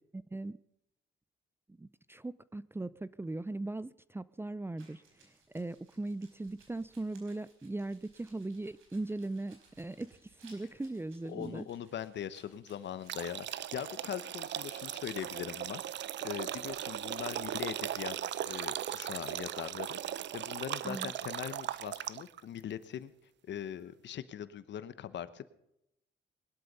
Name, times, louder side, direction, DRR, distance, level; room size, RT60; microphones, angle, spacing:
voice 1, 0.1-0.6 1.7-11.7 20.8-21.1, right 2 dB, 10° right, 18 dB, 0.5 m, -39 dB
sound 1, 4.8-14.1 14.3-17.6, right 4 dB, 85° right, 5.0 m, -64 dB
voice 2, 11.3-23.1 23.4-25.5, left 9 dB, 65° left, 14 dB, 1.1 m, -41 dB
sound 2, 13.1-22.4, right 11 dB, 65° right, 0.7 m, -38 dB
20.5 x 12.0 x 5.4 m, 0.83 s
cardioid pair, 90°, 20 cm